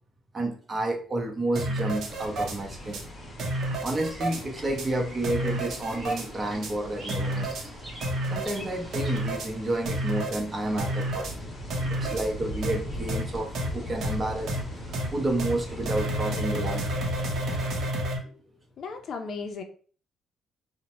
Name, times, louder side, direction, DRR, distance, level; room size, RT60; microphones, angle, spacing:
voice 1, 0.3-3.0 3.8-7.7 8.3-11.3 11.9-17.0 17.5-17.6 18.2-18.3, right 1 dB, 30° right, 2 dB, 0.6 m, -30 dB
sound 1, 1.6-2.6 2.9-3.0 3.4-4.4 4.8-4.9 5.2-6.3 6.6-6.7 7.1-7.7 8.0-8.6 8.9-9.5 9.9-10.4 10.8-11.3 11.7-12.3 12.6-12.8 13.1-13.2 13.6-13.7 14.0-14.1 14.5-14.6 14.9-15.1 15.4-15.5 15.9-18.2, right 1 dB, 70° right, 0.6 m, -30 dB
sound 2, 1.9-17.9, equal, 35° left, 0.9 m, -40 dB
Bird vocalization bird call bird song, 4.1-9.2, equal, 15° right, 1.0 m, -46 dB
voice 2, 18.8-19.6, left 4 dB, 55° left, 5 dB, 0.5 m, -35 dB
2.8 x 2.1 x 2.9 m, 0.42 s
cardioid pair, 105°, 0 cm